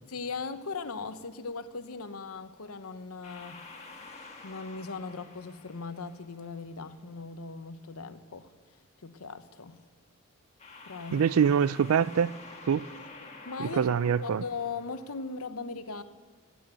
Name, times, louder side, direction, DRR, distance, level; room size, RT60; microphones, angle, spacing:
voice 1, 0.1-3.6 4.4-8.5 9.0-9.8 10.9-11.3 13.4-13.9 14.2-16.0, left 4 dB, 90° left, 0.9 m, -39 dB
sound 1, 3.2-6.6 10.6-15.4, left 3 dB, 30° left, 1.7 m, -49 dB
voice 2, 11.1-12.3 12.7-12.9 13.6-14.4, right 7 dB, 80° right, 0.4 m, -24 dB
15.0 x 9.2 x 9.2 m
head